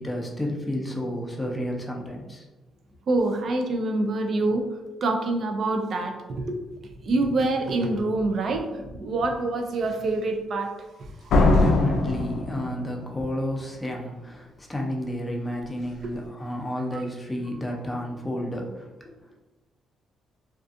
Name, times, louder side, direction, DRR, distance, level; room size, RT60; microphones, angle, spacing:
voice 1, 0.0-2.5 11.5-18.9, equal, 15° left, 0 dB, 0.5 m, -31 dB
voice 2, 3.1-4.7 5.0-6.6 7.0-10.7 11.0-11.5 16.0-16.1 16.9-17.0, right 2 dB, 55° right, 4 dB, 0.4 m, -26 dB
Slam, 11.3-13.2, left 2 dB, 70° left, 0.3 m, -21 dB
2.4 x 2.4 x 2.5 m, 1.1 s
cardioid pair, 90°, 0 cm